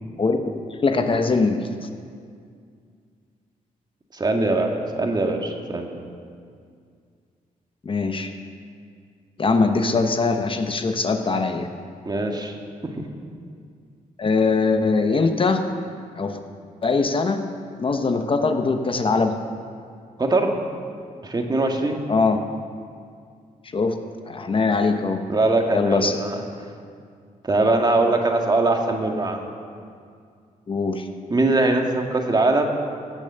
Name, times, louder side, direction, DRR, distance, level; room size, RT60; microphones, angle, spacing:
voice 1, 0.7-1.9 7.8-8.3 9.4-11.7 14.2-15.6 16.2-16.4 16.8-17.4 17.8-19.3 22.1-22.4 23.7-23.9 24.3-25.2 25.7-26.2 30.7-31.1, left 4 dB, 40° left, 6 dB, 0.9 m, -21 dB
voice 2, 4.1-4.7 5.0-5.9 12.1-12.5 20.2-20.5 21.2-22.0 25.3-26.4 27.4-29.4 31.3-32.6, right 2 dB, 30° right, 2 dB, 1.8 m, -21 dB
16.0 x 7.1 x 6.8 m, 2.2 s
cardioid pair, 80°, 14 cm